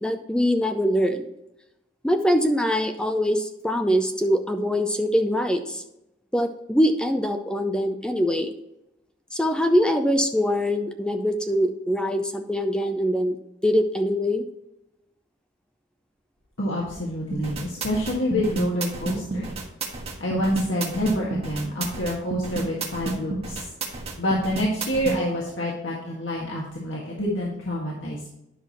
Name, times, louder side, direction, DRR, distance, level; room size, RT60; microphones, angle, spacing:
voice 1, 0.0-1.3 2.0-5.8 6.3-8.5 9.3-13.4 13.6-14.4, equal, 5° left, 7 dB, 0.5 m, -23 dB
voice 2, 16.6-19.5 20.2-28.3, equal, 80° left, -3 dB, 1.7 m, -27 dB
sound 1, 17.3-25.2, right 3 dB, 35° right, 1.5 m, -30 dB
10.5 x 6.1 x 3.0 m, 0.88 s
head